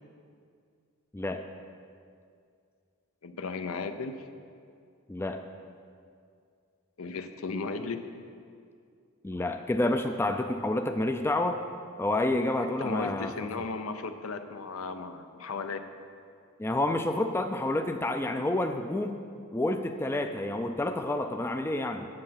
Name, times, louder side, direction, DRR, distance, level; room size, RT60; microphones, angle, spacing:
voice 1, 3.2-4.3 7.0-8.0 12.6-15.9, left 4 dB, 75° left, 9 dB, 0.6 m, -35 dB
voice 2, 5.1-5.4 9.2-11.6 12.0-13.3 16.6-19.2 19.5-22.1, left 2 dB, 10° left, 6 dB, 0.3 m, -29 dB
9.7 x 7.7 x 5.8 m, 2.3 s
head